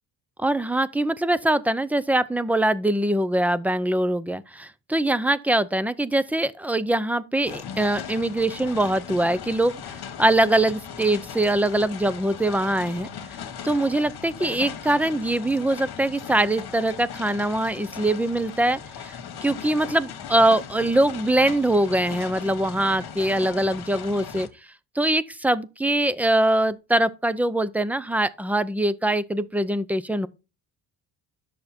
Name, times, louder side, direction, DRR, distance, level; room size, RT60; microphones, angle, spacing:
voice 1, 0.4-13.1 13.6-19.2 19.4-24.5 25.0-30.3, right 1 dB, 5° right, 0.5 m, -23 dB
sound 1, 7.4-24.5, left 7 dB, 60° left, 1.8 m, -38 dB
10.5 x 6.6 x 4.4 m
cardioid pair, 110°, 44 cm